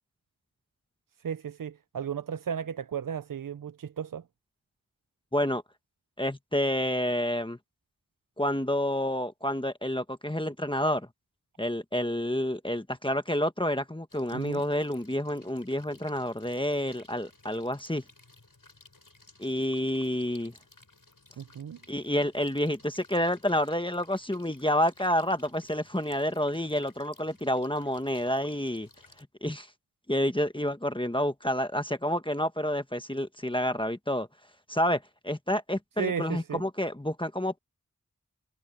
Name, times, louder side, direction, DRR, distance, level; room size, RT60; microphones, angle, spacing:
voice 1, 1.2-4.2 14.3-14.6 21.4-21.8 36.0-36.6, right 7 dB, 80° right, 0.5 m, -34 dB
voice 2, 6.2-7.6 8.4-11.1 11.6-18.0 19.4-20.5 21.9-28.9 29.2-29.7 30.1-34.3 34.7-37.6, left 1 dB, 15° left, 1.3 m, -29 dB
sound 1, 14.1-29.2, left 2 dB, 80° left, 7.7 m, -58 dB
wide cardioid pair, 45°, 33 cm